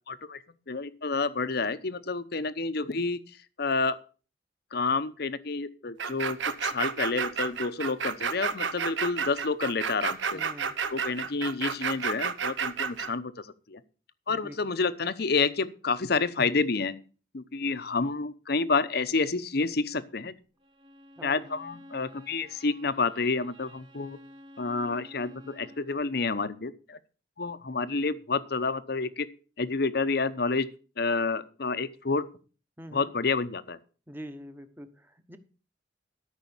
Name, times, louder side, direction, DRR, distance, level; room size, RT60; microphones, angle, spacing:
voice 1, 0.0-3.2 3.6-4.0 4.7-10.4 10.9-13.8 14.3-16.9 17.3-20.3 21.2-24.2 24.6-27.0 27.4-29.3 29.6-30.7 31.0-32.2 32.9-33.8, left 4 dB, 60° left, 13 dB, 0.8 m, -29 dB
sound 1, 6.0-13.1, right 6 dB, 80° right, 0.9 m, -31 dB
voice 2, 10.3-10.7 14.3-14.6 21.2-21.4 32.8-33.1 34.1-35.4, equal, 10° right, 9 dB, 1.1 m, -44 dB
Bowed string instrument, 20.6-26.0, equal, 25° right, 1.1 m, -51 dB
13.5 x 5.6 x 7.2 m, 0.37 s
head